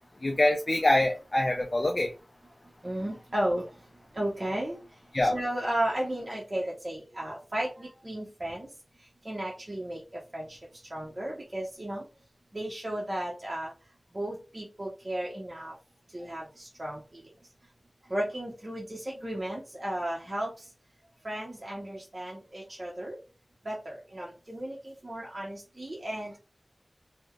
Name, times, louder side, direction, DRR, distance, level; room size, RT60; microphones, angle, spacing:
voice 1, 0.2-2.1 5.1-5.3, left 1 dB, 40° left, 0.4 m, -24 dB
voice 2, 2.8-3.6 4.2-4.8 5.3-8.7 9.3-10.0 10.3-10.5 10.9-12.0 12.5-13.7 14.1-15.7 16.1-17.0 18.1-20.5 21.2-23.2 23.7-24.8 25.0-26.3, right 1 dB, 40° right, 0.7 m, -34 dB
3.1 x 2.0 x 2.3 m
wide cardioid pair, 75°, 0 cm